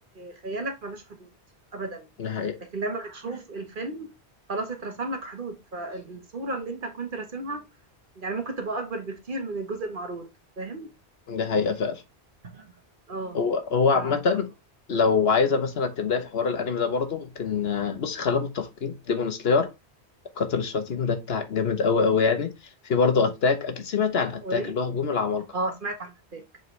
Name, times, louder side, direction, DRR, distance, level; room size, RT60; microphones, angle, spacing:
voice 1, 0.2-1.3 1.7-2.1 2.7-4.1 4.5-7.6 8.2-10.3 10.6-10.9 12.5-12.7 13.1-13.4 13.9-14.2 24.4-24.7 25.5-26.4, right 2 dB, 50° right, 1.4 m, -33 dB
voice 2, 2.2-2.6 11.3-12.0 13.3-14.5 14.9-19.7 20.4-22.5 22.8-25.5, left 5 dB, 65° left, 1.2 m, -24 dB
7.6 x 4.0 x 3.2 m
omnidirectional pair, 1.1 m